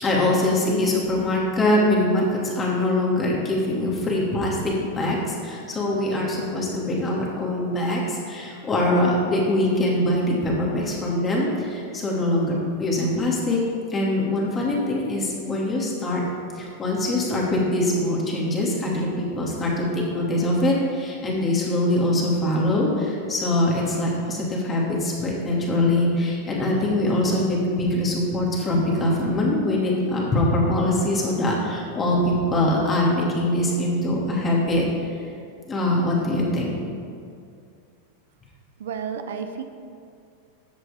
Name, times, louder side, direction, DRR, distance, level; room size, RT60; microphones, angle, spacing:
voice 1, 0.0-13.6 13.9-16.2 16.6-34.8 35.7-36.7, left 1 dB, 20° left, -3 dB, 2.8 m, -23 dB
voice 2, 38.8-39.6, right 7 dB, 80° right, 7 dB, 0.8 m, -31 dB
14.0 x 7.5 x 3.8 m, 2.4 s
hypercardioid pair, 120°, 0 cm